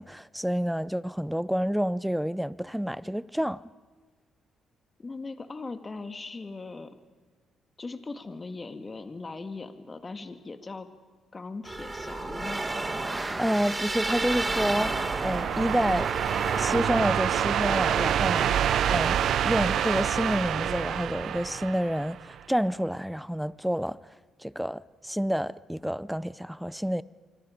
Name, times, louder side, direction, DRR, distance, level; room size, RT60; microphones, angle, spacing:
voice 1, 0.0-3.6 13.4-16.1 16.5-19.2 19.4-24.1 24.4-27.0, equal, ahead, 0.6 m, -29 dB
voice 2, 5.0-7.0 7.8-10.9 11.3-12.6, left 3 dB, 30° left, 1.9 m, -39 dB
sound 1, 11.6-17.1, right 2 dB, 20° right, 2.1 m, -32 dB
sound 2, 13.9-22.4, right 9 dB, 70° right, 0.7 m, -27 dB
25.5 x 25.0 x 5.2 m
cardioid pair, 90°, 0 cm